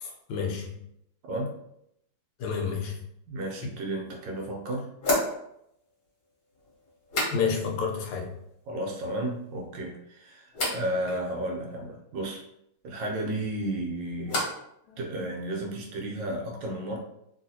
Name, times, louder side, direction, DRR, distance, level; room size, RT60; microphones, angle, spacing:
voice 1, 0.0-0.8 2.4-3.0 7.3-8.3 14.9-15.2, left 5 dB, 85° left, 1 dB, 1.5 m, -30 dB
voice 2, 3.3-4.9 8.7-12.4 12.8-14.4 15.0-17.0, right 1 dB, 70° right, 0 dB, 1.2 m, -33 dB
sound 1, 3.7-3.8 5.0-7.8 8.1-8.7 9.1-9.7 10.5-10.9 13.3-14.7 15.0-15.6, left 1 dB, 50° left, 1.3 m, -34 dB
3.0 x 2.8 x 2.7 m, 0.77 s
omnidirectional pair, 2.4 m